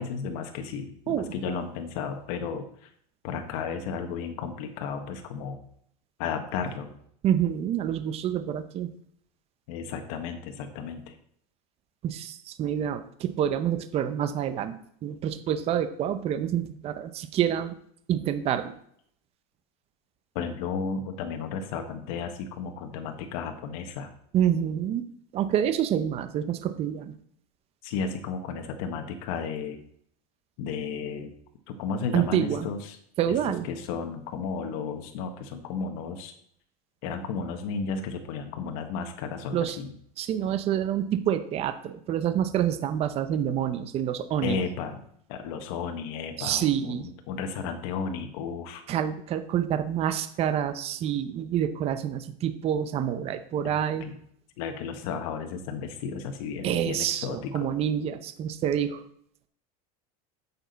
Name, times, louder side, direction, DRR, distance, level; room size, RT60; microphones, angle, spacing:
voice 1, 0.0-2.9 3.2-5.6 6.2-6.9 9.7-11.1 20.3-24.1 27.8-29.8 30.6-31.3 31.7-33.0 33.3-33.4 33.7-36.3 37.0-39.9 44.4-45.0 45.3-47.0 47.3-48.8 53.6-53.7 54.0-54.1 54.6-57.7, left 5 dB, 70° left, 5 dB, 1.2 m, -33 dB
voice 2, 1.1-1.6 7.2-8.9 12.0-14.8 15.0-17.8 18.1-18.8 24.3-25.1 25.3-27.1 32.1-32.7 33.2-33.7 39.5-39.8 40.2-44.6 46.4-47.1 48.9-54.1 56.6-59.0, right 10 dB, 30° right, 11 dB, 0.6 m, -27 dB
8.4 x 6.9 x 4.0 m, 0.66 s
supercardioid pair, 150°, 19 cm